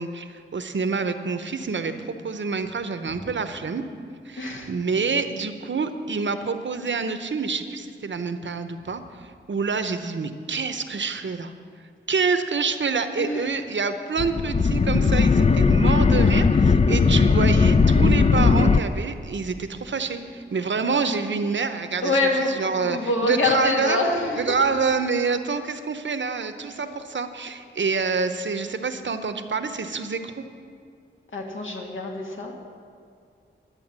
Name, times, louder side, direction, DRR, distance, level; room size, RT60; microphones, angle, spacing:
voice 1, 0.0-3.8 4.2-11.5 12.1-24.0 24.3-30.4, right 4 dB, 65° right, 9 dB, 0.9 m, -27 dB
voice 2, 4.4-4.7 13.2-13.6 22.0-24.5 31.3-32.6, left 2 dB, 75° left, 1 dB, 1.9 m, -25 dB
sound 1, 14.2-18.8, left 4 dB, 30° left, 0.4 m, -18 dB
10.5 x 8.7 x 7.4 m, 2.3 s
wide cardioid pair, 60°, 20 cm